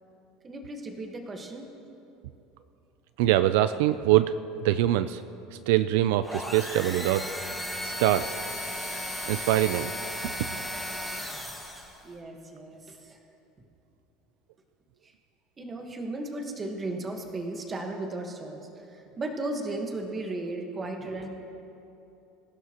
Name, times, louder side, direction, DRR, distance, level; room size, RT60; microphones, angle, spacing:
voice 1, 0.4-1.7 12.0-13.2 15.0-15.1 15.6-21.3, right 2 dB, 15° right, 3 dB, 1.3 m, -35 dB
voice 2, 3.2-4.3 4.6-5.2 5.7-7.3 7.8-8.3 9.3-9.9 10.2-10.3, right 14 dB, 70° right, 12 dB, 0.4 m, -23 dB
sound 1, 6.2-12.0, left 1 dB, ahead, 1.5 m, -35 dB
26.5 x 16.0 x 3.0 m, 2.8 s
cardioid pair, 175°, 0 cm